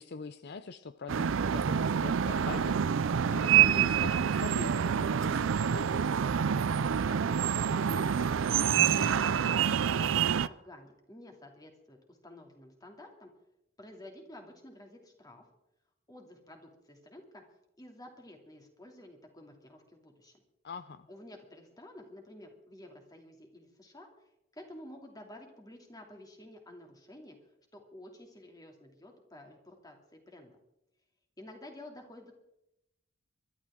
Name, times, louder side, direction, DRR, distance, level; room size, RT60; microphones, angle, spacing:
voice 1, 0.0-2.8 3.3-6.1 20.6-21.1, left 4 dB, 55° left, 12 dB, 0.5 m, -43 dB
sound 1, 1.1-10.5, right 8 dB, 70° right, 0.4 m, -27 dB
voice 2, 6.8-13.3 13.8-15.4 16.1-17.4 17.8-20.4 21.1-24.1 24.5-27.4 27.7-30.6 31.4-32.3, left 1 dB, 20° left, 3 dB, 2.6 m, -51 dB
23.0 x 12.0 x 3.7 m, 0.86 s
head